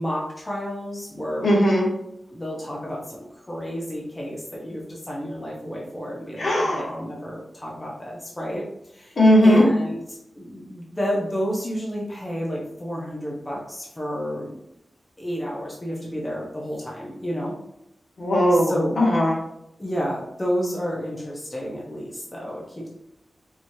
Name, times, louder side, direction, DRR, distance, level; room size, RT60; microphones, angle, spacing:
voice 1, 0.0-1.4 2.3-8.6 8.9-14.5 15.2-17.6 18.5-19.1 19.8-22.9, equal, 15° left, -4 dB, 0.9 m, -31 dB
voice 2, 1.4-1.9 6.4-7.0 9.2-9.7 18.2-19.3, equal, 60° left, -4 dB, 1.5 m, -18 dB
4.5 x 3.1 x 2.8 m, 0.82 s
wide cardioid pair, 120°, 0 cm